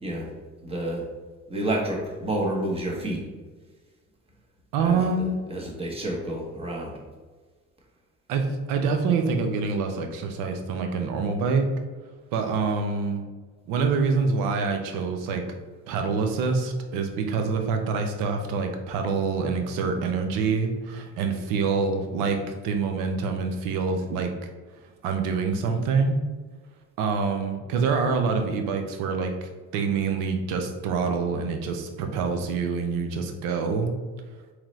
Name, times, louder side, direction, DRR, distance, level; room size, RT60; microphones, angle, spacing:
voice 1, 0.6-1.0 1.5-3.2 4.8-5.1 5.5-7.0, right 1 dB, 15° right, -1 dB, 0.9 m, -29 dB
voice 2, 4.7-5.3 8.3-11.7 12.3-13.2 13.7-15.4 15.9-24.5 25.0-26.2 27.0-33.9, right 4 dB, 85° right, 5 dB, 0.7 m, -26 dB
3.8 x 3.0 x 3.1 m, 1.4 s
cardioid pair, 120°, 33 cm